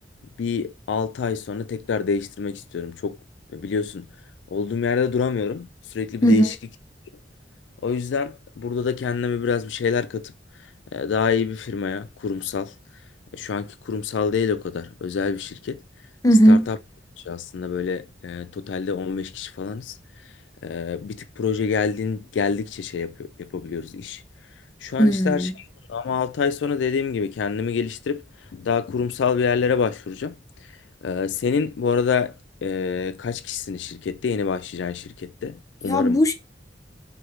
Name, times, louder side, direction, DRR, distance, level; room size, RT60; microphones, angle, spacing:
voice 1, 0.4-3.2 3.5-4.1 4.5-6.5 7.8-10.3 10.9-12.7 13.3-15.8 16.5-16.8 17.3-19.9 20.6-24.2 24.8-25.5 25.9-28.2 28.5-30.4 31.0-32.3 32.6-36.2, left 6 dB, 80° left, 0.4 m, -26 dB
voice 2, 16.2-16.7 25.0-25.5 35.8-36.3, equal, 20° left, 0.5 m, -16 dB
4.6 x 2.9 x 3.1 m
head